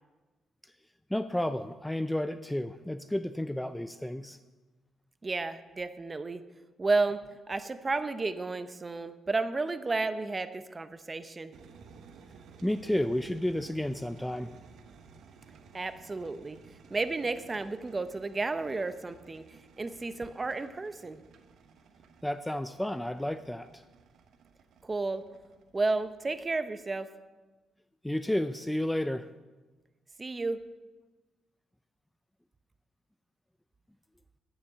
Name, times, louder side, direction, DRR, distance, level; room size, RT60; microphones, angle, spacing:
voice 1, 1.1-4.4 12.6-14.6 22.2-23.8 28.0-29.3, left 1 dB, 5° left, 11 dB, 0.4 m, -31 dB
voice 2, 5.2-6.4 6.8-11.5 15.7-16.6 16.9-19.4 19.8-21.2 24.8-25.2 25.7-27.1 30.2-30.6, right 3 dB, 25° right, 11 dB, 0.7 m, -32 dB
Steaming Kettle, 11.5-26.4, right 5 dB, 70° right, 0.9 m, -56 dB
10.5 x 7.2 x 6.7 m, 1.2 s
cardioid pair, 90°, 0 cm